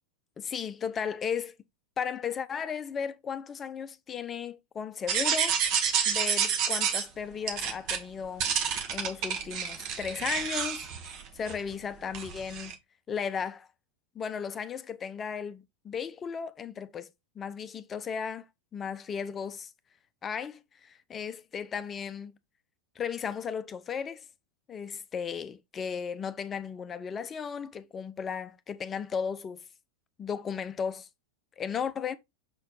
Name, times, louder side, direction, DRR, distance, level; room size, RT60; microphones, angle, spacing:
voice 1, 0.4-1.6 2.0-5.6 6.1-8.5 8.9-12.7 13.1-13.7 14.1-17.1 17.4-18.5 18.7-19.7 20.2-22.3 23.0-24.2 24.7-29.6 30.2-31.1 31.6-32.2, left 7 dB, 20° left, 0.7 m, -35 dB
sound 1, 5.1-7.0 7.5-8.0 8.4-11.7 12.1-12.7, right 7 dB, 40° right, 1.5 m, -29 dB
6.8 x 4.3 x 3.9 m
figure-of-eight pair, 90°, 0 cm